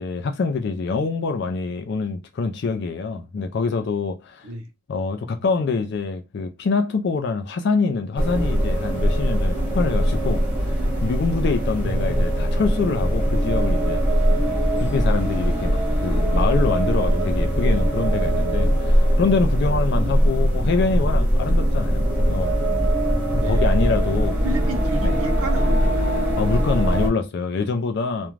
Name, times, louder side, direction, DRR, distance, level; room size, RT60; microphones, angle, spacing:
voice 1, 0.0-4.5 4.9-14.0 14.8-22.6 23.5-24.4 25.0-25.2 26.4-28.3, left 4 dB, 50° left, 0.3 m, -25 dB
sound 1, 8.2-27.1, equal, 10° right, 0.8 m, -21 dB
voice 2, 11.8-12.3 23.3-23.6 24.4-26.0, right 2 dB, 80° right, 0.7 m, -31 dB
2.4 x 2.1 x 3.1 m
head